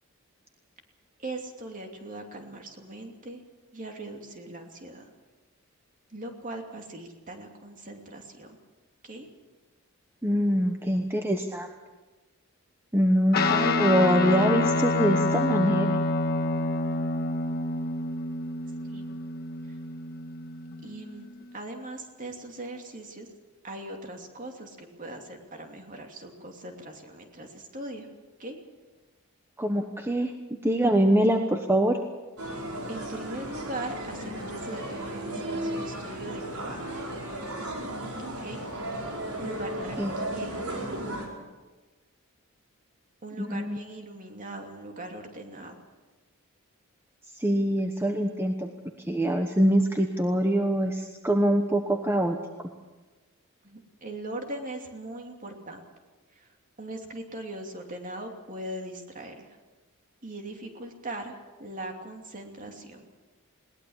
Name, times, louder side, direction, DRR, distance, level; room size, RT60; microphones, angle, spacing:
voice 1, 1.2-3.4 3.7-5.1 6.1-8.6 9.0-9.3 18.8-19.1 19.6-19.8 20.8-23.3 23.6-28.1 28.4-28.6 32.9-36.9 38.4-38.7 39.4-40.6 43.2-45.8 53.6-55.8 56.3-59.6 60.2-63.1, right 1 dB, 35° right, 3 dB, 2.8 m, -40 dB
voice 2, 10.2-11.7 12.9-16.0 29.6-30.3 30.6-32.0 40.0-40.2 43.4-43.8 47.3-48.7 49.1-52.7, equal, 10° right, 4 dB, 1.1 m, -24 dB
Guitar, 13.3-21.0, left 2 dB, 45° left, 1.8 m, -27 dB
sound 1, 32.4-41.3, right 1 dB, 90° right, 5.0 m, -35 dB
21.0 x 19.0 x 7.3 m, 1.2 s
head